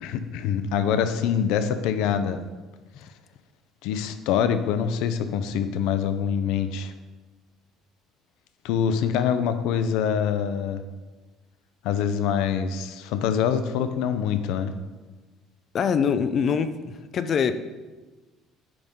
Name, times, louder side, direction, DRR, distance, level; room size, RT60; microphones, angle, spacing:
voice 1, 0.0-2.4 3.8-6.9 8.6-10.8 11.8-14.7, left 8 dB, 85° left, 10 dB, 0.6 m, -25 dB
voice 2, 15.7-17.7, left 6 dB, 40° left, 11 dB, 0.5 m, -24 dB
9.4 x 5.4 x 3.7 m, 1.3 s
cardioid pair, 140°, 0 cm